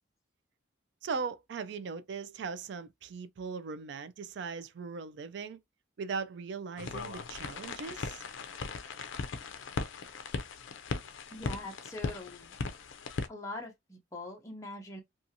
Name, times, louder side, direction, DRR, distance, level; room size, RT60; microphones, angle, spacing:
voice 1, 1.0-5.6 6.0-8.2, right 5 dB, 60° right, 0.3 m, -39 dB
sound 1, 6.8-13.3, left 4 dB, 70° left, 0.4 m, -38 dB
voice 2, 11.3-12.5 13.3-15.0, left 2 dB, 15° left, 0.6 m, -43 dB
2.5 x 2.4 x 2.7 m
head